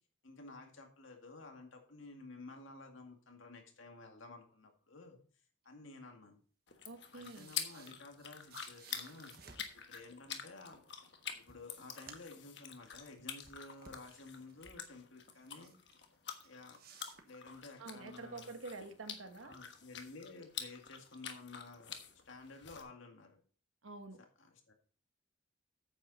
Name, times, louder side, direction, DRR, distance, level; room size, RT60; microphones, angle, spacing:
voice 1, 0.2-5.2 5.6-6.4 7.1-10.8 11.3-15.7 16.4-16.8 17.2-18.6 19.4-22.0 22.3-23.4 24.2-24.7, left 3 dB, 75° left, 4 dB, 2.1 m, -53 dB
sound 1, 6.7-22.8, left 8 dB, 60° left, 1.3 m, -48 dB
voice 2, 6.8-7.5 17.8-19.6 23.8-24.2, right 3 dB, 85° right, 8 dB, 1.3 m, -48 dB
sound 2, 7.1-9.8 10.9-11.0 11.3-12.4 12.8-14.9 15.3-16.0 16.3-17.9, right 5 dB, 50° right, 1.3 m, -59 dB
9.0 x 8.4 x 4.1 m, 0.41 s
head